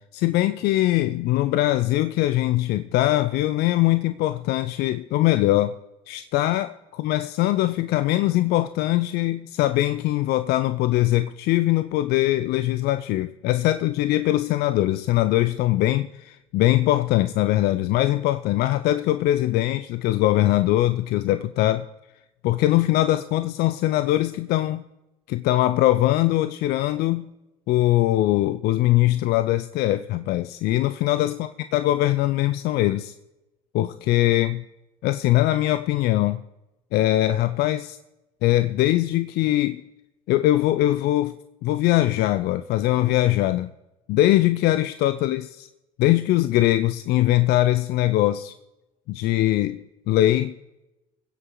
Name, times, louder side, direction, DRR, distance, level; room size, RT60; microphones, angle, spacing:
voice 1, 0.1-5.7 6.1-21.9 22.4-24.8 25.3-27.3 27.7-33.1 33.7-34.6 35.0-36.4 36.9-38.0 38.4-39.8 40.3-41.3 41.6-43.7 44.1-45.7 46.0-48.5 49.1-49.8 50.1-50.5, left 15 dB, 60° left, 12 dB, 0.6 m, -21 dB
21.5 x 8.1 x 3.9 m, 0.96 s
hypercardioid pair, 70°, 19 cm